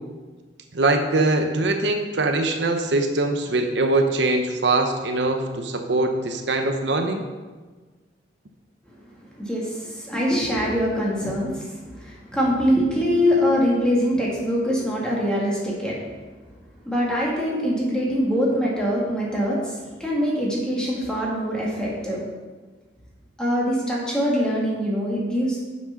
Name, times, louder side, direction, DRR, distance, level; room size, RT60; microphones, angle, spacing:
voice 1, 0.7-7.2, right 2 dB, 75° right, 5 dB, 0.8 m, -22 dB
voice 2, 9.4-16.0 16.9-22.2 23.4-25.6, equal, 5° left, -5 dB, 2.0 m, -23 dB
7.3 x 6.2 x 5.7 m, 1.3 s
head